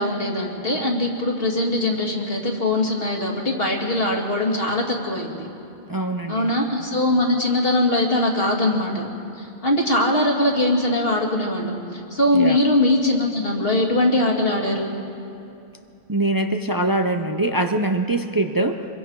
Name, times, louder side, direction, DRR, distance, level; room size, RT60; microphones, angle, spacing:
voice 1, 0.0-5.5 6.3-9.1 9.4-14.9, left 1 dB, 70° left, 0 dB, 2.4 m, -21 dB
voice 2, 5.9-6.5 12.3-12.6 16.1-18.9, right 2 dB, 25° right, 5 dB, 0.6 m, -23 dB
25.5 x 22.0 x 4.7 m, 2.7 s
omnidirectional pair, 1.0 m